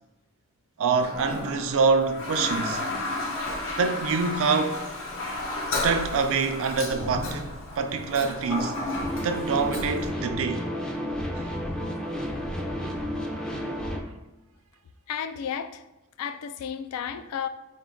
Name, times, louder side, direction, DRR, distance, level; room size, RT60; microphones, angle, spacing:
voice 1, 0.8-2.8 3.8-4.8 5.8-8.7 9.2-10.7, right 4 dB, 65° right, 0.4 m, -25 dB
Toilet flush, 1.0-10.1, left 2 dB, 60° left, 0.8 m, -32 dB
sound 1, 9.0-14.0, equal, 5° left, 0.3 m, -31 dB
voice 2, 15.1-15.8 16.2-17.5, left 8 dB, 85° left, 0.3 m, -32 dB
4.5 x 2.2 x 3.7 m
head